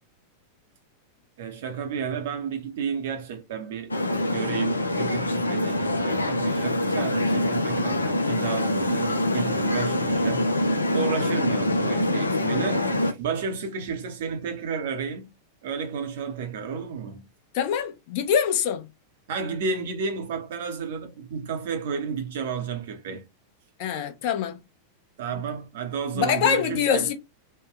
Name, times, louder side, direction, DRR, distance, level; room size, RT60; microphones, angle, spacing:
voice 1, 1.4-3.9 4.2-10.5 10.9-15.3 15.6-17.2 19.3-23.2 25.2-27.1, right 6 dB, 55° right, 0.6 m, -32 dB
sound 1, 3.9-13.1, left 1 dB, 80° left, 0.4 m, -25 dB
voice 2, 17.5-18.9 23.8-24.6 26.1-27.1, left 8 dB, 45° left, 0.7 m, -24 dB
3.2 x 2.1 x 3.6 m
figure-of-eight pair, 90°, 0 cm